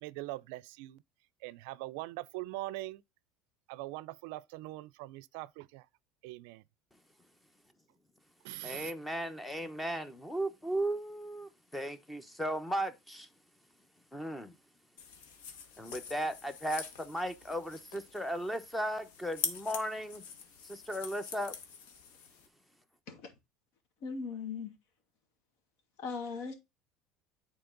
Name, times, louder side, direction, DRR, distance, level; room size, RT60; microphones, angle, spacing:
voice 1, 0.0-1.0 1.4-3.0 3.7-5.8 6.2-6.6 8.4-8.9, right 18 dB, 75° right, 0.4 m, -42 dB
voice 2, 8.6-13.3 14.1-14.5 15.8-20.2 20.6-21.5, right 1 dB, 5° left, 1.0 m, -36 dB
sound 1, 15.0-22.5, left 6 dB, 90° left, 1.3 m, -44 dB
voice 3, 24.0-24.7 26.0-26.5, left 5 dB, 70° left, 2.4 m, -38 dB
9.6 x 4.1 x 3.9 m
supercardioid pair, 130°, 0 cm